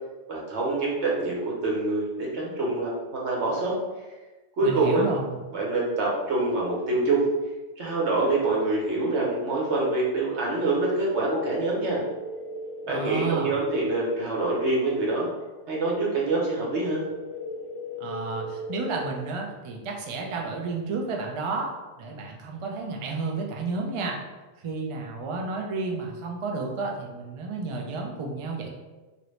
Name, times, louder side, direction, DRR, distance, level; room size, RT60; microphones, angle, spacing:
voice 1, 0.3-3.7 4.6-5.0 5.5-7.3 7.8-12.0 12.9-15.3 15.7-17.0, right 2 dB, 75° right, -4 dB, 1.2 m, -25 dB
voice 2, 4.6-5.4 12.9-13.6 18.0-21.7 22.0-24.2 24.6-28.7, right 4 dB, 60° right, 0 dB, 0.3 m, -31 dB
sound 1, 11.1-13.1 17.1-19.1, left 1 dB, 30° left, 1.1 m, -37 dB
2.9 x 2.6 x 3.1 m, 1.2 s
omnidirectional pair, 1.2 m